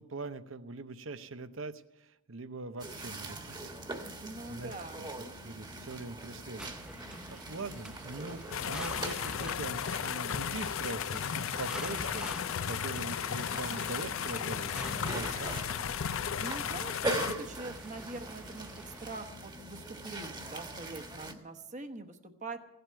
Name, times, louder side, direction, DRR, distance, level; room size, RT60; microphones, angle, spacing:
voice 1, 0.0-3.7 4.5-5.1 5.4-15.6, right 3 dB, 80° right, 12 dB, 0.8 m, -42 dB
sound 1, 2.8-21.3, right 2 dB, 20° right, 1.4 m, -42 dB
voice 2, 3.8-5.0 7.1-7.5 16.0-22.6, right 2 dB, 35° right, 6 dB, 1.1 m, -44 dB
sound 2, 6.6-19.3, equal, 5° right, 0.6 m, -48 dB
sound 3, 8.5-17.3, left 8 dB, 80° left, 0.5 m, -35 dB
16.5 x 8.0 x 9.3 m, 0.89 s
head